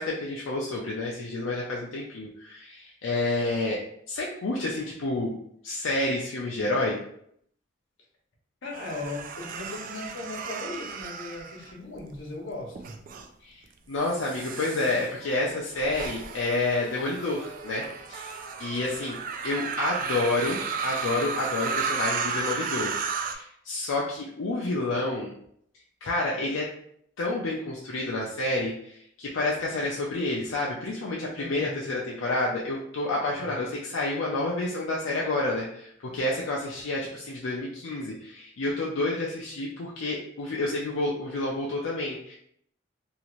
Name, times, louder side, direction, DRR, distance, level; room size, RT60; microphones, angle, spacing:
voice 1, 0.0-3.8 4.1-5.4 5.6-7.0 13.4-13.6 13.9-19.2 19.4-25.3 26.0-26.7 27.2-42.4, left 2 dB, 85° left, -3 dB, 0.5 m, -29 dB
voice 2, 8.6-13.0 31.4-31.9 33.3-33.5, left 2 dB, 70° left, -2 dB, 0.9 m, -38 dB
sound 1, 8.7-12.2 12.8-13.3 14.0-23.3, right 5 dB, 45° right, 0.3 m, -34 dB
2.7 x 2.4 x 3.0 m, 0.69 s
head